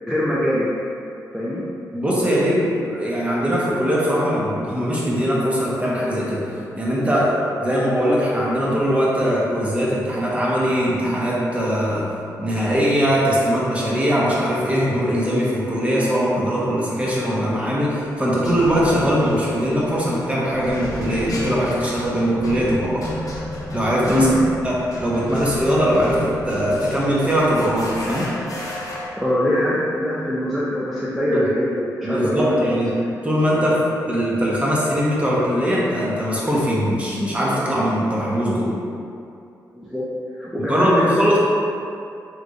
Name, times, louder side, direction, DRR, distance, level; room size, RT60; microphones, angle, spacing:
voice 1, 0.0-0.7 1.3-1.6 24.1-24.6 29.2-32.8 33.5-33.8 39.8-40.0 40.4-41.3, equal, ahead, -8 dB, 0.5 m, -23 dB
voice 2, 1.9-6.5 6.8-12.1 12.4-23.0 23.7-24.3 24.6-28.3 31.3-31.5 32.0-33.0 33.2-33.8 34.1-38.8 40.6-41.4, equal, 20° right, -6 dB, 0.9 m, -21 dB
sound 1, 17.4-17.7 18.4-29.1, left 1 dB, 55° left, 0.6 m, -32 dB
3.3 x 3.1 x 2.6 m, 2.5 s
cardioid pair, 60°, 7 cm